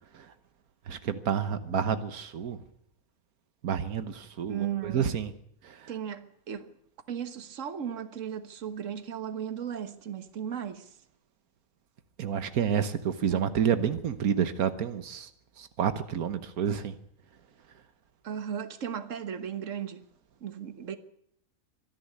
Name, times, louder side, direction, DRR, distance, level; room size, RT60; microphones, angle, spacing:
voice 1, 0.9-2.6 3.6-5.3 5.6-5.9 12.2-15.3 15.6-16.9, right 8 dB, 85° right, 1.5 m, -29 dB
voice 2, 4.5-5.1 5.9-6.7 7.1-10.9 13.3-13.5 18.2-20.0 20.4-21.0, right 8 dB, 60° right, 1.6 m, -36 dB
25.0 x 11.0 x 9.6 m
omnidirectional pair, 1.5 m